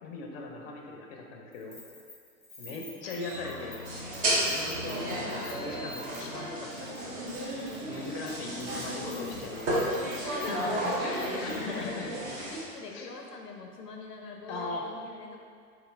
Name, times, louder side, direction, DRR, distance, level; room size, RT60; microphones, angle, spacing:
voice 1, 0.0-1.8 2.6-3.8 4.4-7.2 7.8-12.1 12.9-13.1 14.5-14.8, left 3 dB, 40° left, 0 dB, 0.6 m, -39 dB
Keys jangling, 1.5-6.5 6.7-7.0 7.3-11.8, left 2 dB, 10° left, 0.8 m, -50 dB
voice 2, 2.7-3.5 5.1-6.0 7.7-9.0 10.2-12.0 12.5-15.4, left 2 dB, 90° left, 1 dB, 0.6 m, -44 dB
sound 1, 3.0-9.7, equal, 75° right, 1.1 m, -47 dB
sound 2, 3.8-12.6, right 1 dB, 20° right, 0.5 m, -33 dB
4.1 x 2.7 x 2.5 m, 2.2 s
figure-of-eight pair, 100°, 46 cm